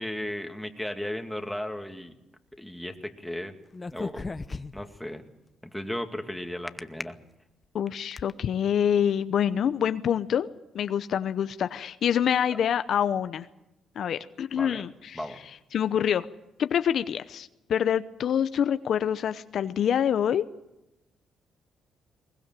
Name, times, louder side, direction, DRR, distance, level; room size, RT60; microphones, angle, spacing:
voice 1, 0.0-2.1 2.6-3.6 3.9-4.3 4.7-5.3 5.6-7.2 9.6-9.7 14.5-14.8 15.1-15.4, left 1 dB, ahead, 4 dB, 2.3 m, -35 dB
sound 1, 3.7-5.0 6.7-7.0 7.6-8.3, left 3 dB, 25° left, 0.8 m, -35 dB
voice 2, 7.7-10.5 10.7-13.5 14.0-15.2 15.7-16.3 16.6-20.5, left 9 dB, 65° left, 12 dB, 0.7 m, -26 dB
21.5 x 20.5 x 7.6 m, 0.93 s
cardioid pair, 90°, 0 cm